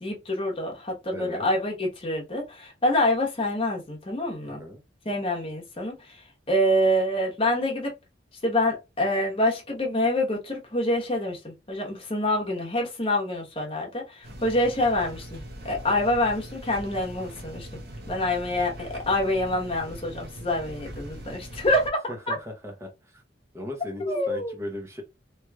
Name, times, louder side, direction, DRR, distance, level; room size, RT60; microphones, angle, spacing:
voice 1, 0.0-4.6 5.0-6.2 6.5-7.9 8.4-17.7 18.1-22.0 22.3-22.4 24.0-24.5, left 1 dB, 30° left, 1.1 m, -26 dB
voice 2, 1.1-1.5 4.6-4.8 22.1-23.2 23.5-25.0, left 1 dB, 15° right, 0.9 m, -37 dB
sound 1, 14.2-21.9, right 1 dB, 55° right, 0.8 m, -41 dB
3.1 x 3.0 x 2.3 m
head